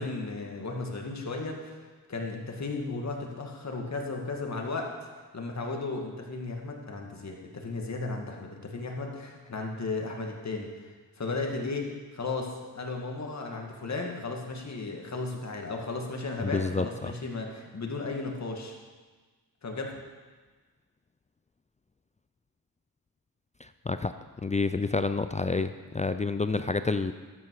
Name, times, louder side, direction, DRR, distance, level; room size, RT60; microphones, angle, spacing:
voice 1, 0.0-1.8 2.1-5.1 5.3-10.9 11.2-18.8 19.6-19.9, left 3 dB, 45° left, 1 dB, 2.1 m, -35 dB
voice 2, 16.4-17.1 23.6-24.1 24.4-27.1, left 3 dB, 20° left, 10 dB, 0.4 m, -29 dB
12.5 x 8.4 x 4.8 m, 1.4 s
cardioid pair, 60°, 37 cm